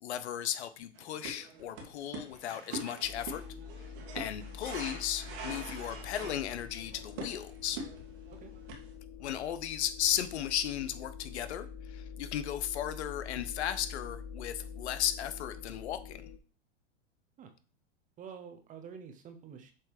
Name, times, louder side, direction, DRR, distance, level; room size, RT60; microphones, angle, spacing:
voice 1, 0.0-3.4 4.1-7.8 9.2-16.2, left 10 dB, 75° left, 12 dB, 0.9 m, -35 dB
sound 1, 1.0-8.9, right 3 dB, 55° right, 1.9 m, -44 dB
sound 2, 3.0-16.4, left 6 dB, 30° left, 0.6 m, -46 dB
voice 2, 18.2-19.7, right 6 dB, 25° right, 8 dB, 0.9 m, -48 dB
7.4 x 3.2 x 4.9 m, 0.38 s
hypercardioid pair, 135°, 33 cm